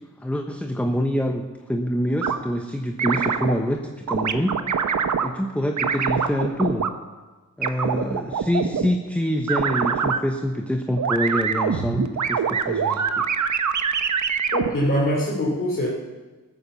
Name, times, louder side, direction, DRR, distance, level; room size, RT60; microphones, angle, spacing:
voice 1, 0.2-4.6 5.2-6.9 7.6-13.3, equal, 5° left, 4 dB, 0.9 m, -26 dB
sound 1, 2.2-2.4 3.0-3.5 4.1-5.3 5.8-6.9 7.6-8.9 9.5-10.2 11.0-14.7, right 6 dB, 65° right, 1.0 m, -24 dB
voice 2, 14.5-15.9, equal, 40° left, -5 dB, 3.3 m, -23 dB
14.5 x 9.2 x 7.0 m, 1.3 s
wide cardioid pair, 85°, 32 cm